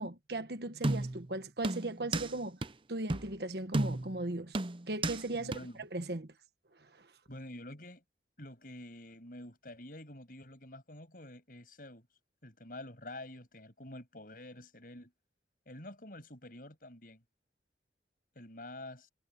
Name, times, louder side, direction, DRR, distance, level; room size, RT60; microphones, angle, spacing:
voice 1, 0.0-2.6 2.9-4.6 4.9-5.5 5.8-6.3 7.0-7.1, right 2 dB, 65° right, 1.5 m, -37 dB
sound 1, 0.8-1.3 1.6-2.3 2.6-2.7 3.1-3.3 3.7-4.2 4.5-5.2 5.5-5.6, right 2 dB, 30° right, 0.7 m, -33 dB
voice 2, 5.3-5.8 7.3-8.0 8.4-12.1 12.4-15.1 15.7-17.2 18.4-19.1, left 1 dB, 50° left, 7.5 m, -48 dB
head